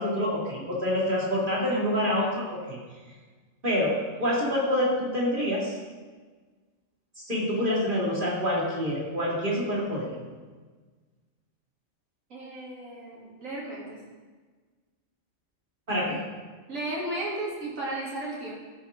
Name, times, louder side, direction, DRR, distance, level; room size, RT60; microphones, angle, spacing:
voice 1, 0.0-2.4 2.7-2.8 3.6-5.8 7.2-10.1 15.9-16.2, left 1 dB, 40° right, -5 dB, 2.5 m, -26 dB
voice 2, 12.3-14.0 16.7-18.5, right 1 dB, 85° right, -6 dB, 3.3 m, -34 dB
14.0 x 7.2 x 3.7 m, 1.4 s
omnidirectional pair, 1.3 m